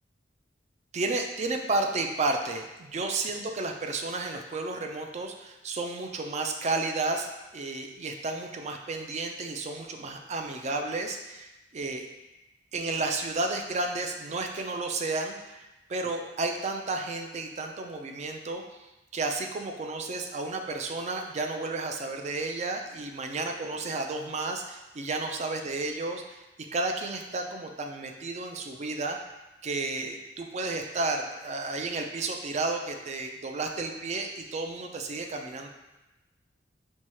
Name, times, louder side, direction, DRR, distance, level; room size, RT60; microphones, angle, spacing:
voice 1, 0.9-12.1 12.7-26.5 26.7-29.2 29.6-35.7, right 3 dB, 35° right, 4 dB, 0.4 m, -32 dB
4.5 x 2.3 x 4.3 m, 1.0 s
head